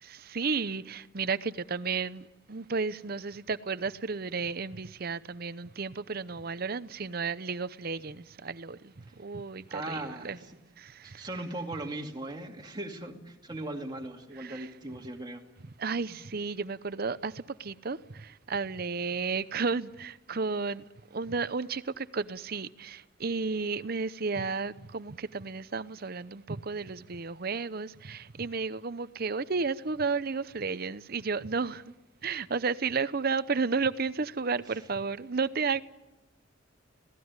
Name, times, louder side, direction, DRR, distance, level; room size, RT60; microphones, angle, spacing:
voice 1, 0.0-10.4 10.8-11.3 14.3-14.7 15.8-20.8 21.1-31.9 32.2-35.8, right 4 dB, 50° right, 0.8 m, -33 dB
voice 2, 9.7-10.5 11.0-15.4 16.1-16.2, right 2 dB, 20° right, 2.4 m, -39 dB
25.5 x 18.0 x 9.7 m
head